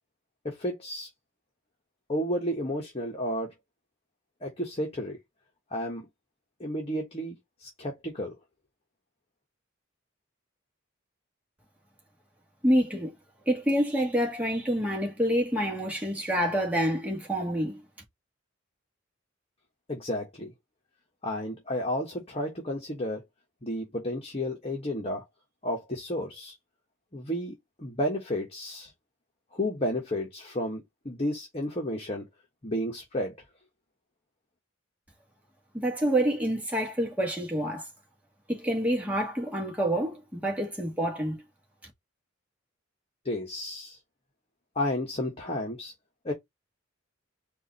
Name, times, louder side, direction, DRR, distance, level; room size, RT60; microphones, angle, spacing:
voice 1, 0.4-1.1 2.1-3.5 4.4-5.2 5.7-6.1 6.6-8.3 19.9-20.5 21.2-23.2 23.6-25.2 25.6-26.5 27.1-28.9 29.5-32.2 32.6-33.4 43.2-44.0 44.7-45.9 46.2-46.3, left 1 dB, 30° left, 1.3 m, -32 dB
voice 2, 12.6-13.1 13.4-17.8 35.7-37.9 38.5-41.4, equal, 5° right, 1.6 m, -27 dB
4.8 x 2.7 x 4.1 m
head